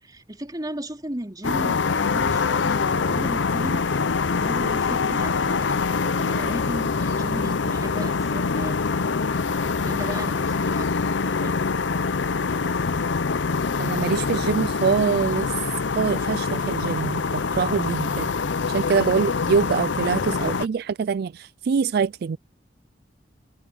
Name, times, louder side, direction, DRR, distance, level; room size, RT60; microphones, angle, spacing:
voice 1, 0.0-3.9 4.3-8.8 9.8-11.6 17.5-17.9 18.8-19.2, right 1 dB, 20° right, 3.8 m, -36 dB
sound 1, 1.4-20.7, left 4 dB, 90° left, 0.7 m, -24 dB
voice 2, 13.8-15.5 16.0-18.3 18.7-22.4, right 6 dB, 60° right, 0.3 m, -24 dB
head